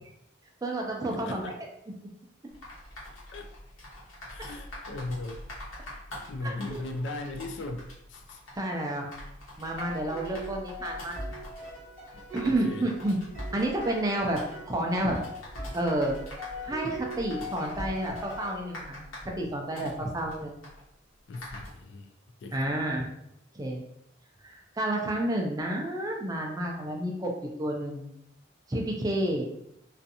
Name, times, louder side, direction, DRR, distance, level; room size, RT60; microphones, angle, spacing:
voice 1, 0.6-1.5 6.4-6.8 8.6-9.2 9.6-11.2 12.3-13.2 13.5-14.4 14.7-15.2 15.7-16.2 16.6-19.1 19.4-20.6 22.5-23.1 23.5-23.8 24.4-27.3 27.6-28.1 28.7-29.5, right 1 dB, 15° right, 0 dB, 0.3 m, -30 dB
voice 2, 1.1-1.6 3.3-3.5 4.3-5.7 6.3-8.4 12.1-12.9 20.0-20.1 21.3-22.1 22.4-22.7, left 2 dB, 60° left, 4 dB, 0.3 m, -38 dB
sound 1, 2.5-21.7, left 1 dB, 80° left, 1.1 m, -45 dB
sound 2, 9.8-19.1, equal, 40° left, 1.1 m, -41 dB
2.5 x 2.4 x 2.6 m, 0.77 s
head